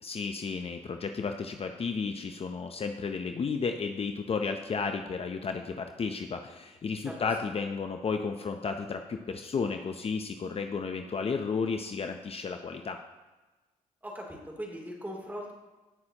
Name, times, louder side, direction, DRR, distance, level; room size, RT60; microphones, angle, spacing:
voice 1, 0.0-13.0, left 5 dB, 45° left, 5 dB, 0.7 m, -33 dB
voice 2, 14.0-15.5, equal, 10° right, -1 dB, 3.1 m, -40 dB
17.5 x 6.1 x 3.0 m, 1.2 s
cardioid pair, 80°, 14 cm